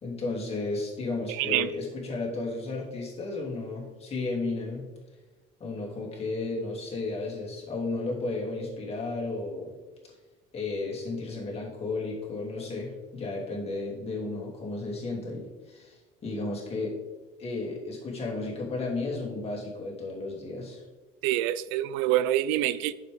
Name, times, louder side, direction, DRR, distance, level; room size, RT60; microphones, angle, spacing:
voice 1, 0.0-4.8 5.6-9.7 10.5-17.0 17.4-20.8, left 3 dB, 30° left, 2.8 m, -33 dB
voice 2, 1.3-1.7 21.2-22.9, right 13 dB, 85° right, 0.4 m, -26 dB
9.1 x 7.0 x 3.5 m
cardioid pair, 115°, 19 cm